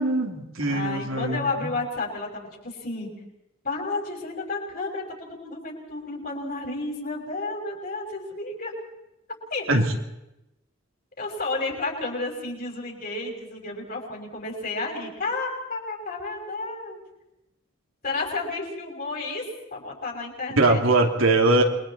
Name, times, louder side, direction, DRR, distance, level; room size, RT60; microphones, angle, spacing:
voice 1, 0.0-1.7 9.7-9.9 20.6-21.6, right 2 dB, 85° right, 2 dB, 3.0 m, -21 dB
voice 2, 0.7-3.1 3.6-8.7 9.5-9.9 11.2-17.0 18.0-19.4 19.7-20.8, left 3 dB, 45° left, 0 dB, 6.1 m, -31 dB
28.5 x 22.5 x 4.4 m, 0.89 s
head